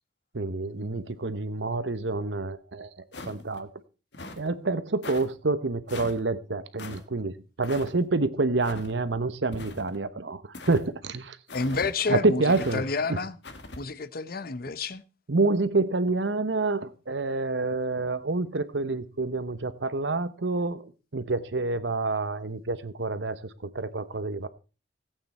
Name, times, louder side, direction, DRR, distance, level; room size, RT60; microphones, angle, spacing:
voice 1, 0.3-2.9 3.3-3.7 4.4-10.4 10.7-11.4 12.1-12.8 13.1-13.2 15.3-24.5, right 3 dB, 80° right, 1.0 m, -28 dB
sound 1, 3.1-3.6 4.1-4.5 5.0-5.3 5.9-6.2 6.8-7.0 7.6-7.9 8.6-8.9 9.5-10.0 10.5-10.8 11.5-11.9 12.5-12.8 13.4-13.8, left 2 dB, 70° left, 1.5 m, -41 dB
voice 2, 11.5-12.4 12.7-13.3 13.8-15.0, left 4 dB, 55° left, 0.7 m, -29 dB
16.5 x 8.7 x 4.3 m
head